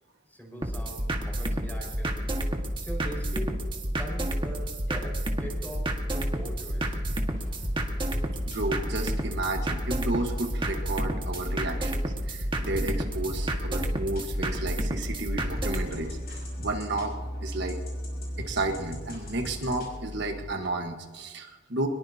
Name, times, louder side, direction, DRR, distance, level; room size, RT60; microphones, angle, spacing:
voice 1, 0.3-2.5 2.8-7.0 19.5-19.6, right 1 dB, 10° left, -1 dB, 5.3 m, -42 dB
sound 1, 0.6-15.9, right 1 dB, 25° right, 1.6 m, -30 dB
sound 2, 7.1-8.6 9.9-11.8 12.7-14.2 14.9-20.5, equal, 55° left, 5.5 m, -39 dB
voice 2, 8.4-12.0 12.3-17.1 17.4-17.8 18.4-21.9, right 2 dB, 65° right, 3 dB, 1.4 m, -32 dB
23.0 x 21.0 x 2.8 m, 1.3 s
head